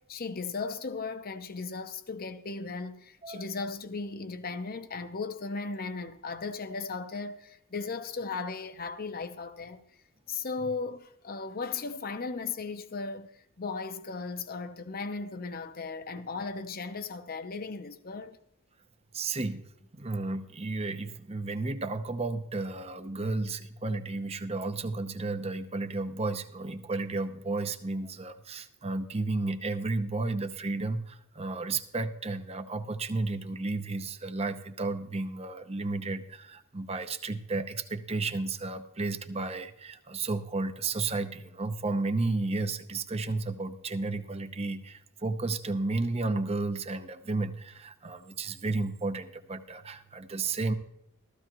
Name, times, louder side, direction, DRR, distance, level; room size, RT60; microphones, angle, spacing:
voice 1, 0.0-9.8 10.3-13.3 13.6-18.4, left 4 dB, 45° left, 0.8 m, -36 dB
voice 2, 19.1-19.6 19.9-50.7, right 3 dB, 30° right, 0.8 m, -32 dB
15.0 x 14.0 x 3.0 m
head